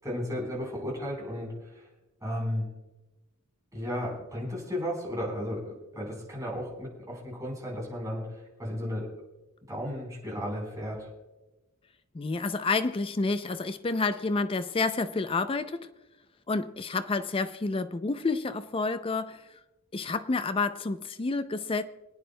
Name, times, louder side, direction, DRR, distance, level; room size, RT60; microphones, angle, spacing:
voice 1, 0.0-1.8 2.2-2.7 3.7-9.1 9.7-11.1, equal, 15° right, 4.3 m, -34 dB
voice 2, 12.1-15.9 16.5-19.4 19.9-21.8, left 3 dB, 25° left, 0.4 m, -29 dB
26.5 x 9.3 x 2.2 m
head